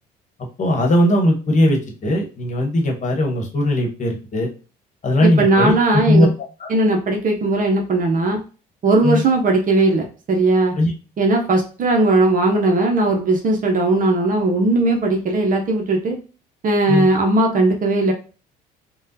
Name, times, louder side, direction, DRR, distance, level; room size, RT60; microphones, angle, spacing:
voice 1, 0.6-4.5 5.0-5.7 6.0-6.3 6.6-6.7 9.0-9.2 10.8-10.9 16.9-17.1, left 1 dB, 40° left, 1 dB, 1.1 m, -18 dB
voice 2, 5.2-6.3 6.7-8.4 8.8-10.7 11.2-16.2 16.6-18.1, right 2 dB, 45° right, 2 dB, 0.7 m, -18 dB
3.5 x 2.2 x 2.7 m, 0.35 s
supercardioid pair, 70°, 20 cm